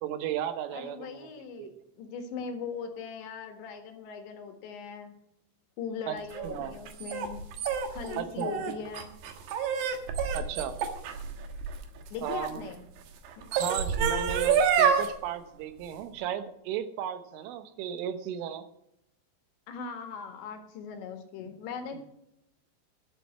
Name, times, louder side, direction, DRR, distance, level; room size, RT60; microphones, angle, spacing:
voice 1, 0.0-1.3 1.6-1.7 6.1-6.2 6.4-6.8 8.2-8.5 10.3-10.8 12.2-12.6 13.5-18.7, right 10 dB, 90° right, 10 dB, 3.6 m, -35 dB
voice 2, 0.7-5.1 5.8-7.5 7.9-9.1 12.1-12.8 13.4-13.5 19.7-22.0, left 6 dB, 70° left, 5 dB, 3.8 m, -39 dB
sound 1, 6.3-12.5 13.3-15.1, right 7 dB, 70° right, 3.2 m, -28 dB
12.0 x 7.4 x 8.2 m, 0.79 s
omnidirectional pair, 5.5 m